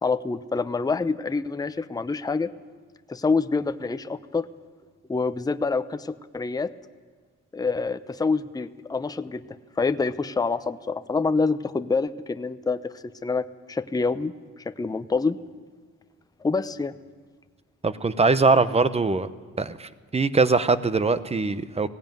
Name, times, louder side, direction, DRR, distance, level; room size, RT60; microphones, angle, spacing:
voice 1, 0.0-2.5 3.1-4.5 5.1-6.7 7.5-9.4 9.8-14.3 14.7-15.4 16.4-16.9, left 4 dB, 10° left, 10 dB, 0.7 m, -26 dB
voice 2, 17.8-19.3 19.6-21.9, right 4 dB, 20° right, 14 dB, 0.9 m, -22 dB
18.0 x 16.0 x 9.2 m, 1.5 s
cardioid pair, 90°, 30 cm